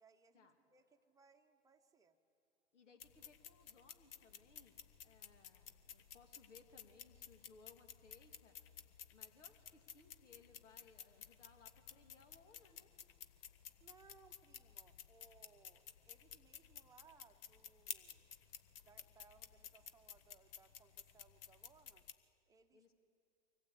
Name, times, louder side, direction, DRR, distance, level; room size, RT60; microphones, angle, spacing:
voice 1, 0.0-2.2 13.8-18.2 18.8-22.0 22.5-22.9, right 5 dB, 10° right, 5 dB, 1.0 m, -67 dB
voice 2, 2.7-8.5 9.1-12.9 22.7-22.9, left 4 dB, 80° left, 5 dB, 2.2 m, -65 dB
sound 1, 3.0-22.1, left 9 dB, 50° left, 1.1 m, -55 dB
24.0 x 16.0 x 8.4 m, 2.7 s
hypercardioid pair, 125°, 36 cm